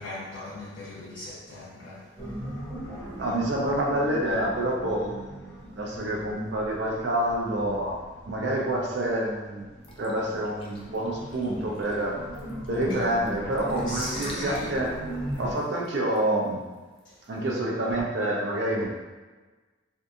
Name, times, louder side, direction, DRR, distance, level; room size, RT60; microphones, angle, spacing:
voice 1, 0.0-2.1 12.9-13.0 13.9-14.8 17.0-17.1, left 1 dB, 75° left, -10 dB, 0.6 m, -39 dB
sound 1, 2.2-8.7 9.2-15.5, equal, 5° left, 0.7 m, -38 dB
voice 2, 3.2-8.0 8.3-9.7 10.0-12.2 12.7-14.9 15.4-16.6 17.3-18.9, right 1 dB, 60° right, -2 dB, 0.4 m, -27 dB
sound 2, 9.8-17.5, left 1 dB, 25° left, 0.3 m, -45 dB
2.6 x 2.5 x 2.4 m, 1.3 s
head